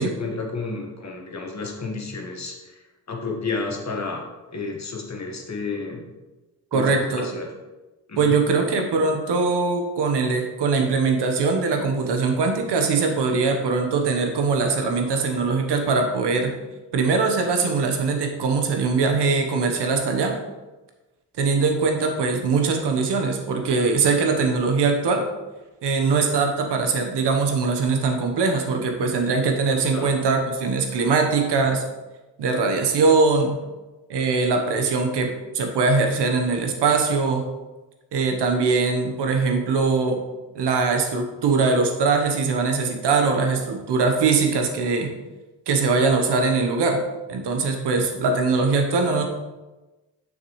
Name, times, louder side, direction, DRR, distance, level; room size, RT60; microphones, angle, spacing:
voice 1, 0.0-2.5 3.1-4.2 4.5-6.0 6.7-7.5 8.1-8.3 29.9-30.1, left 4 dB, 40° left, 1 dB, 1.7 m, -31 dB
voice 2, 6.7-7.4 8.2-16.5 16.9-20.3 21.4-25.2 25.8-31.8 32.4-33.6 34.1-37.5 38.1-40.2 40.5-45.1 45.7-47.0 47.3-49.2, right 4 dB, 70° right, 4 dB, 1.3 m, -21 dB
6.5 x 6.4 x 3.2 m, 1.1 s
supercardioid pair, 55°, 42 cm